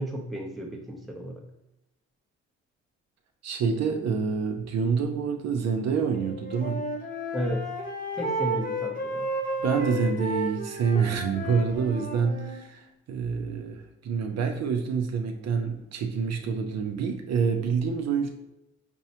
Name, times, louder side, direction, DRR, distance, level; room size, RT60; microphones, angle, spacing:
voice 1, 0.0-1.4 7.3-7.7 8.2-9.3, equal, ahead, -1 dB, 0.6 m, -33 dB
voice 2, 3.4-6.8 9.6-18.3, right 6 dB, 60° right, 5 dB, 0.5 m, -27 dB
Wind instrument woodwind instrument, 6.2-12.6, right 1 dB, 30° left, 1.0 m, -32 dB
5.2 x 2.1 x 2.8 m, 0.90 s
cardioid pair, 90°, 30 cm